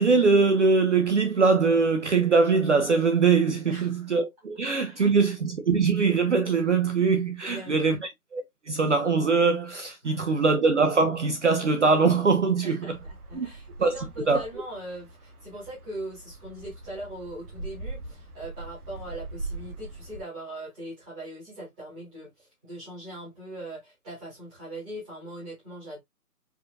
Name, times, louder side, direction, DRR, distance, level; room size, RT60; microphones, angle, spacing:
voice 1, 0.0-8.0 8.3-13.0 13.3-13.5 13.8-14.0 14.3-14.4, right 4 dB, 50° right, 0.6 m, -22 dB
voice 2, 3.7-4.1 4.8-5.1 7.4-8.0 10.0-10.4 12.6-26.0, right 1 dB, 5° right, 1.3 m, -40 dB
sound 1, 12.9-20.2, right 2 dB, 75° right, 1.1 m, -41 dB
4.8 x 2.6 x 2.3 m
hypercardioid pair, 170°, 46 cm